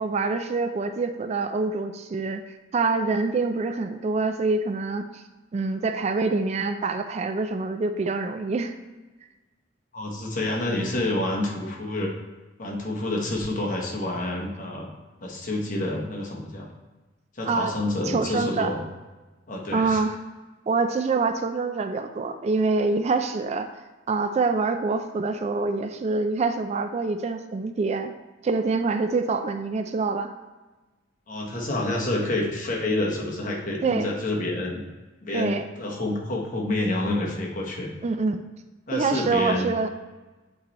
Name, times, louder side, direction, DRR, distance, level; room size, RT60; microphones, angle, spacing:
voice 1, 0.0-2.4 2.7-5.2 5.5-8.7 17.5-17.7 18.0-18.7 19.7-20.1 20.7-23.7 24.1-28.1 28.4-30.3 33.8-34.1 35.3-35.6 38.0-38.4 38.9-39.9, right 4 dB, 35° right, 8 dB, 0.3 m, -25 dB
voice 2, 9.9-12.1 12.6-14.9 15.2-16.7 17.3-18.8 19.5-20.0 31.3-34.8 35.2-37.9 38.9-39.7, left 1 dB, 45° left, -1 dB, 1.2 m, -28 dB
8.2 x 3.3 x 4.1 m, 1.2 s
head